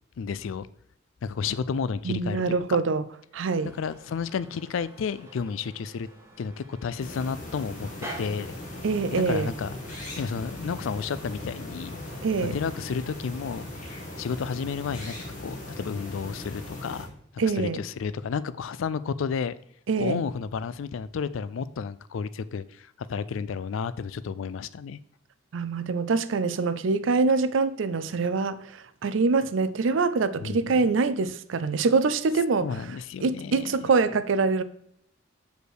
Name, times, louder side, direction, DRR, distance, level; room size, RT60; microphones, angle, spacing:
voice 1, 0.2-0.7 1.2-2.6 3.8-6.1 6.4-8.5 9.1-9.7 10.2-12.0 12.5-13.7 14.2-17.1 17.4-19.5 20.0-25.0 30.4-30.9 32.6-33.9, left 6 dB, 75° left, 0.4 m, -32 dB
voice 2, 2.0-3.0 3.3-3.7 8.8-9.5 12.2-12.5 17.4-17.8 19.9-20.2 25.5-32.7 33.2-34.6, right 4 dB, 70° right, 0.4 m, -24 dB
sound 1, 3.3-14.7, right 1 dB, 15° right, 1.3 m, -48 dB
sound 2, 7.0-17.0, left 1 dB, 40° left, 2.0 m, -39 dB
6.4 x 5.1 x 4.8 m
head